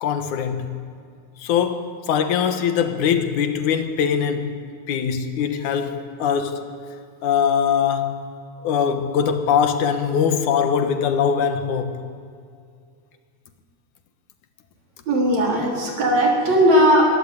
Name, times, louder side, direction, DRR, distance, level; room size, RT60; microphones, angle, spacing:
voice 1, 0.0-0.9 1.4-4.6 4.9-6.6 7.2-8.3 8.6-12.0, left 7 dB, 80° left, 2.7 m, -22 dB
voice 2, 15.1-17.1, equal, 65° right, 5.3 m, -17 dB
22.0 x 18.0 x 8.6 m
omnidirectional pair, 3.4 m